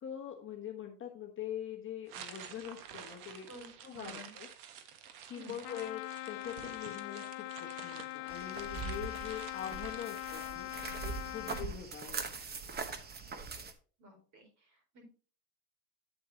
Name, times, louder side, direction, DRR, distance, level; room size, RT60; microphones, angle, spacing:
voice 1, 0.0-3.5 3.8-4.5 5.3-10.7 11.0-12.2, left 9 dB, 25° left, 1 dB, 1.3 m, -43 dB
sound 1, 2.1-11.4, right 8 dB, 60° right, 1.5 m, -51 dB
voice 2, 3.5-4.3 5.3-5.5 11.5-11.7 14.0-15.0, equal, 40° right, 1 dB, 4.5 m, -51 dB
Trumpet, 5.6-11.7, left 20 dB, 50° left, 0.8 m, -42 dB
sound 2, 8.3-13.7, right 5 dB, 20° right, 1.0 m, -42 dB
8.5 x 8.3 x 2.8 m, 0.39 s
supercardioid pair, 120°, 46 cm